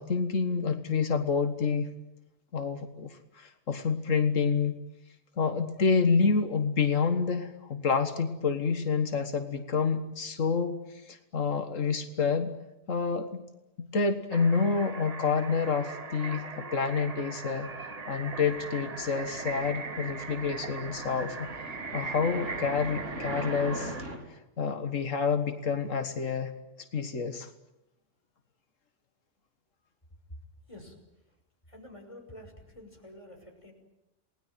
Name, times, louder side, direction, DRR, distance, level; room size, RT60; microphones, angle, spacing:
voice 1, 0.0-1.9 2.5-4.8 5.4-12.5 12.9-13.4 13.8-17.7 18.1-21.5 21.9-24.0 24.3-26.5 26.9-27.5, left 5 dB, 90° left, 8 dB, 2.0 m, -28 dB
sound 1, 14.3-24.0, right 4 dB, 30° right, 1.2 m, -40 dB
sound 2, 16.4-24.2, right 1 dB, 75° right, 4.7 m, -42 dB
voice 2, 31.7-33.7, left 1 dB, 25° left, 2 dB, 6.3 m, -48 dB
28.5 x 19.5 x 9.2 m, 0.92 s
omnidirectional pair, 1.3 m